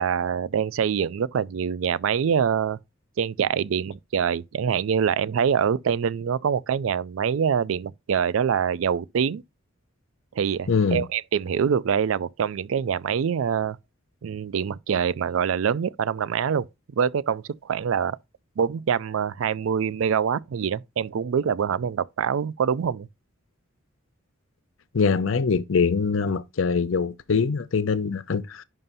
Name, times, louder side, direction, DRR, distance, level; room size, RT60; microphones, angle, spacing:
voice 1, 0.0-2.8 3.2-9.4 10.3-13.8 14.2-16.7 17.0-18.2 18.6-23.1, right 7 dB, 75° right, 0.4 m, -25 dB
voice 2, 10.7-11.0 24.9-28.6, left 5 dB, 70° left, 0.6 m, -23 dB
10.5 x 5.5 x 2.7 m
head